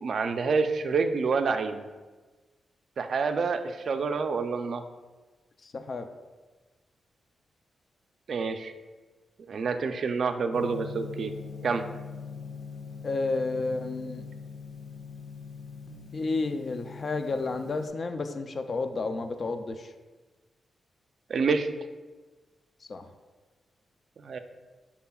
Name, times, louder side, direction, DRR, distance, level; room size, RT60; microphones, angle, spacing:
voice 1, 0.0-1.8 3.0-4.8 8.3-8.7 9.5-11.3 11.6-11.8 21.3-21.7 24.2-24.4, right 4 dB, 55° right, 7 dB, 0.4 m, -27 dB
voice 2, 5.6-6.1 13.0-14.3 16.1-19.9 22.8-23.1, left 3 dB, 40° left, 7 dB, 0.4 m, -31 dB
Gong, 10.5-17.9, left 5 dB, 80° left, 0.9 m, -42 dB
11.0 x 4.2 x 2.3 m, 1.3 s
wide cardioid pair, 140°, 0 cm